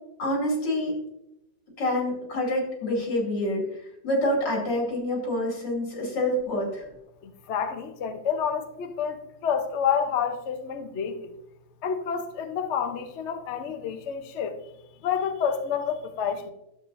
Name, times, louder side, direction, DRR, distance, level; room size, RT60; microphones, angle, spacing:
voice 1, 0.2-0.9 1.8-3.6 4.0-6.9, left 1 dB, 90° left, -2 dB, 3.4 m, -27 dB
voice 2, 7.2-11.3 11.8-14.6 15.0-16.5, left 7 dB, 55° left, 8 dB, 0.8 m, -29 dB
12.0 x 7.4 x 2.5 m, 0.87 s
omnidirectional pair, 1.9 m